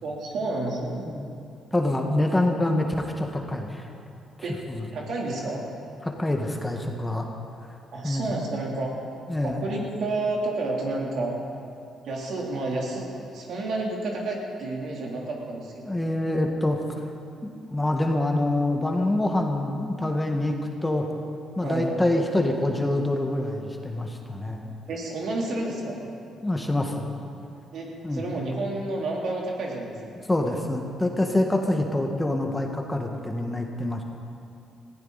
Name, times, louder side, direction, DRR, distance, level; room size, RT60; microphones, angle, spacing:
voice 1, 0.0-1.0 4.4-4.6 4.9-5.6 7.9-8.9 9.4-11.4 12.0-16.0 21.6-21.9 24.9-26.0 27.7-30.2, right 2 dB, 65° right, -2 dB, 3.4 m, -30 dB
voice 2, 1.7-3.9 4.4-4.9 6.0-7.3 8.0-8.4 9.3-9.6 15.8-17.0 17.4-21.1 21.6-24.7 26.4-27.1 28.0-28.2 30.3-34.0, left 1 dB, 15° left, 2 dB, 1.7 m, -26 dB
19.5 x 15.0 x 4.2 m, 2.5 s
cardioid pair, 90°, 0 cm